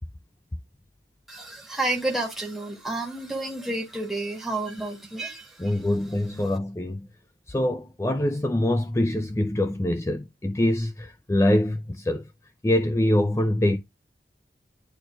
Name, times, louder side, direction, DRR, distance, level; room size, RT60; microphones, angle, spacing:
voice 1, 1.3-5.7, right 2 dB, ahead, 1.9 m, -30 dB
voice 2, 5.6-7.1 7.5-12.2 12.6-13.8, left 1 dB, 15° left, 0.4 m, -24 dB
10.5 x 4.2 x 2.4 m
head